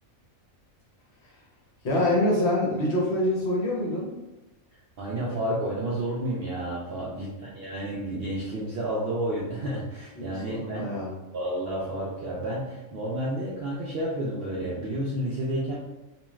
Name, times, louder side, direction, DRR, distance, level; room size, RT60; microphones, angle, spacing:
voice 1, 1.8-4.1 7.0-7.1 10.2-11.1, left 1 dB, 60° left, -3 dB, 0.9 m, -26 dB
voice 2, 4.7-10.9 11.3-15.7, right 1 dB, 65° right, -5 dB, 0.6 m, -31 dB
2.5 x 2.3 x 3.0 m, 0.99 s
omnidirectional pair, 1.5 m